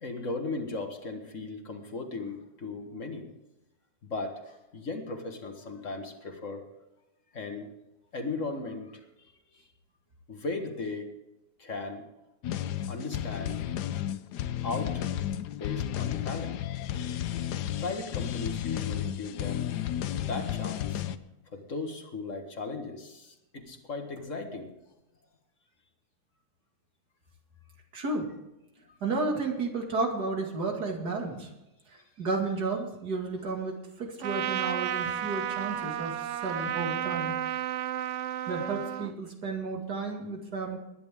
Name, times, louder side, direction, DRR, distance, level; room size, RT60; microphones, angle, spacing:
voice 1, 0.0-3.3 4.0-6.6 7.3-7.7 8.1-9.0 10.3-11.1 11.6-12.0 12.9-13.6 14.6-15.1 15.5-16.6 17.8-19.7 20.3-21.0 21.5-24.7, left 3 dB, 50° left, 5 dB, 1.9 m, -37 dB
sound 1, 12.4-21.2, left 11 dB, 85° left, 1.3 m, -33 dB
voice 2, 27.9-28.3 29.0-31.5 31.9-37.3 38.5-40.8, right 3 dB, 80° right, 1 dB, 2.8 m, -32 dB
Trumpet, 34.2-39.1, right 10 dB, 65° right, 0.8 m, -32 dB
20.5 x 10.5 x 3.6 m, 0.94 s
omnidirectional pair, 1.7 m